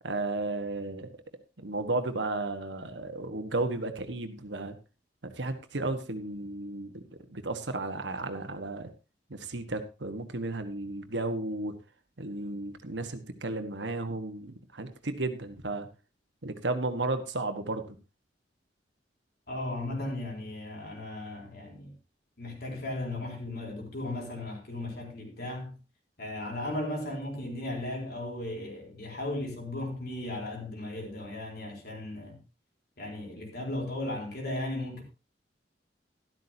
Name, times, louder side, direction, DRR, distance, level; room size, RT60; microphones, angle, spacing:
voice 1, 0.0-1.1 1.6-4.7 5.2-8.9 9.3-11.7 12.2-15.9 16.4-18.0, right 2 dB, 85° right, 1.5 m, -33 dB
voice 2, 19.5-21.9 22.4-25.8 26.2-32.4 33.0-35.0, left 1 dB, 60° left, 4.0 m, -36 dB
12.5 x 12.5 x 2.9 m
head